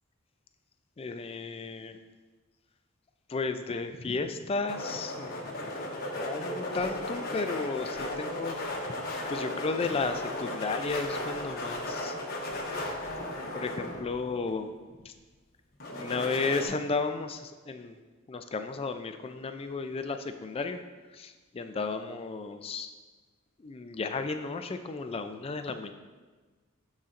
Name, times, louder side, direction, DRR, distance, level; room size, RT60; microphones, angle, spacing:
voice 1, 1.0-2.0 3.3-5.7 6.0-8.6 9.3-12.1 13.5-14.7 15.0-15.1 16.0-18.0 18.3-20.8 21.2-22.9 23.6-25.9, left 4 dB, 30° left, 8 dB, 0.4 m, -33 dB
sound 1, 4.7-14.5 15.8-16.7, left 1 dB, 45° left, 0.9 m, -36 dB
12.0 x 4.1 x 2.5 m, 1.3 s
head